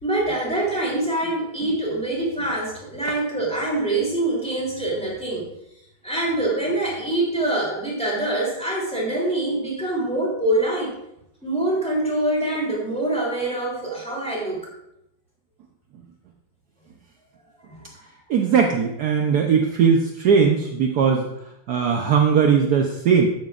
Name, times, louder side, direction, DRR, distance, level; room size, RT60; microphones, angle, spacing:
voice 1, 0.0-5.5 6.0-10.9 11.4-14.6 17.7-17.8, right 1 dB, 5° left, -4 dB, 3.1 m, -24 dB
voice 2, 18.3-21.3 21.7-23.3, right 6 dB, 65° right, 2 dB, 1.2 m, -19 dB
12.5 x 9.2 x 2.5 m, 0.82 s
omnidirectional pair, 2.0 m